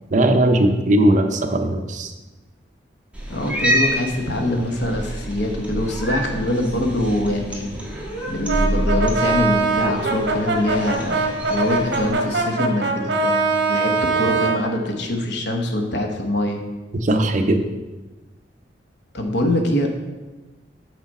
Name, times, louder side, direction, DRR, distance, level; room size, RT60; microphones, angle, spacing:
voice 1, 0.1-2.1 17.0-17.6, right 1 dB, 45° right, 6 dB, 0.6 m, -18 dB
Cat, 3.1-12.1, equal, 5° right, 1.4 m, -27 dB
voice 2, 3.3-7.7 8.3-16.6 19.1-19.9, left 1 dB, 65° left, 3 dB, 1.0 m, -24 dB
Brass instrument, 8.5-14.6, right 3 dB, 65° right, 1.0 m, -22 dB
6.1 x 5.9 x 4.2 m, 1.2 s
head